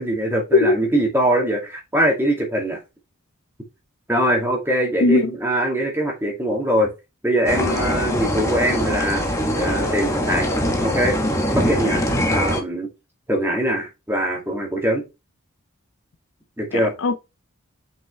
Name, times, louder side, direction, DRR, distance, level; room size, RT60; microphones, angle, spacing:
voice 1, 0.0-2.8 4.1-6.9 7.2-9.3 9.6-10.5 10.8-11.1 11.5-12.0 12.3-12.9 13.3-15.0 16.6-16.9, right 1 dB, 10° right, 2.3 m, -22 dB
voice 2, 5.0-5.4 16.7-17.2, left 3 dB, 60° left, 0.5 m, -18 dB
sound 1, 7.5-12.6, equal, 15° left, 1.1 m, -22 dB
6.1 x 5.5 x 3.3 m
head